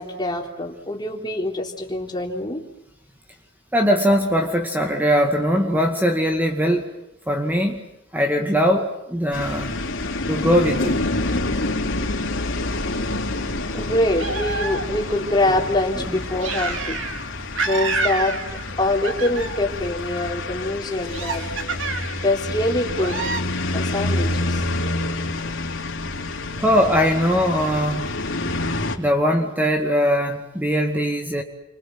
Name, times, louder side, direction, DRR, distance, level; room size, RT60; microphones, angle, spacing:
voice 1, 0.0-2.6 13.7-17.1 17.6-18.4 18.8-21.5 22.2-23.2 23.7-24.6, left 1 dB, 25° left, 1 dB, 3.8 m, -24 dB
voice 2, 3.7-6.9 7.3-7.8 8.1-9.7 10.3-11.0 16.0-16.1 26.6-28.1 29.0-31.4, equal, 10° right, 3 dB, 2.2 m, -20 dB
sound 1, 9.3-29.0, left 2 dB, 85° left, 3.5 m, -28 dB
sound 2, 14.2-15.2 16.4-17.3 17.6-18.7 19.0-19.8 21.0-22.3 22.9-23.4, right 3 dB, 75° right, 3.6 m, -28 dB
30.0 x 24.5 x 7.9 m, 0.88 s
head